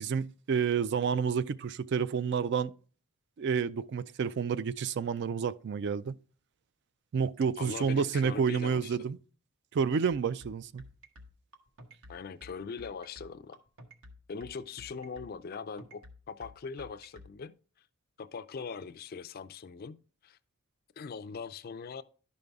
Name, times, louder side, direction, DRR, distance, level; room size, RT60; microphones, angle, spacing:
voice 1, 0.0-2.7 3.4-6.1 7.1-9.2 9.7-10.8, right 6 dB, 50° right, 0.3 m, -29 dB
voice 2, 7.6-9.1 12.1-13.6 14.3-17.6 18.2-20.4 21.0-22.0, left 5 dB, 45° left, 0.4 m, -41 dB
sound 1, 10.4-17.3, left 1 dB, 75° right, 1.1 m, -51 dB
11.0 x 5.3 x 3.5 m
head